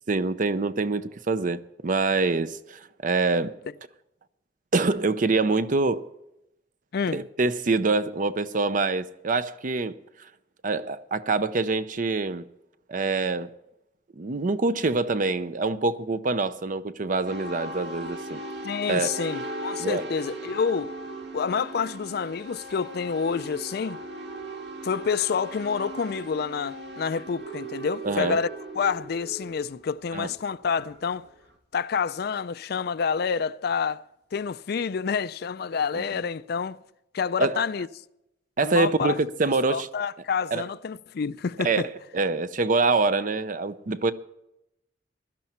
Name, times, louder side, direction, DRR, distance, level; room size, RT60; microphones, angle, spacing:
voice 1, 0.1-3.6 4.7-6.1 7.1-10.0 10.6-12.5 12.9-13.5 14.2-18.4 18.9-19.1 19.8-20.0 28.0-28.4 30.1-30.3 35.9-36.0 37.4-37.6 38.6-39.9 40.5-40.6 41.6-41.8 42.1-44.1, right 3 dB, 45° right, 0.6 m, -25 dB
sound 1, 17.2-31.5, right 2 dB, 65° right, 2.0 m, -38 dB
voice 2, 18.6-20.9 21.3-24.0 24.8-28.5 28.8-31.3 31.7-34.0 34.3-36.8 37.1-37.9 38.6-39.2 39.7-41.9, left 6 dB, 60° left, 0.4 m, -28 dB
16.5 x 12.0 x 4.4 m
head